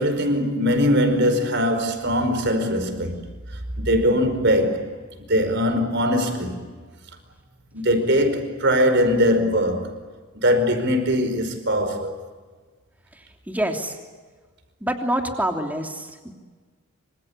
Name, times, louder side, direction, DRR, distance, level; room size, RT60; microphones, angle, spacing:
voice 1, 0.0-3.2 3.8-4.9 5.3-6.7 7.7-10.0 10.3-12.1, equal, 55° right, 5.1 m, -21 dB
voice 2, 13.2-14.0 14.8-16.3, right 1 dB, 10° right, 3.0 m, -27 dB
27.0 x 26.0 x 8.5 m
head